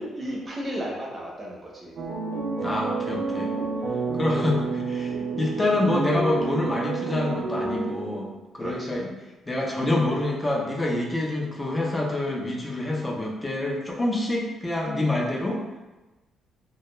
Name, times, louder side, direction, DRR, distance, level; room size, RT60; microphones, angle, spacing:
voice 1, 0.0-1.9 8.6-9.0, equal, 30° right, -3 dB, 0.7 m, -34 dB
sound 1, 2.0-8.4, right 4 dB, 80° right, 0.4 m, -29 dB
voice 2, 2.6-3.5 4.1-8.3 8.5-9.1 9.5-15.6, left 2 dB, 20° left, -1 dB, 0.5 m, -26 dB
2.2 x 2.2 x 2.9 m, 1.1 s
cardioid pair, 90°, 0 cm